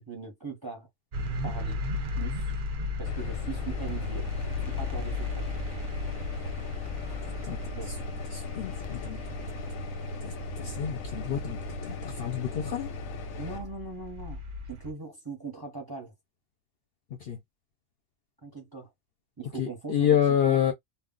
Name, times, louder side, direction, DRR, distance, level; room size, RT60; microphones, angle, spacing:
voice 1, 0.1-0.9 1.4-1.8 2.2-2.4 3.0-4.3 4.7-5.5 7.7-8.1 13.4-14.4 14.7-16.1 18.4-18.9 19.4-20.6, right 4 dB, 20° right, 0.7 m, -40 dB
sound 1, 1.1-14.9, left 3 dB, 55° right, 0.5 m, -36 dB
sound 2, 3.1-13.6, left 3 dB, 90° left, 1.0 m, -38 dB
voice 2, 7.2-7.6 8.3-9.2 10.2-12.9 17.2-17.4 19.6-20.7, left 9 dB, 60° left, 0.7 m, -28 dB
2.3 x 2.0 x 3.6 m
omnidirectional pair, 1.4 m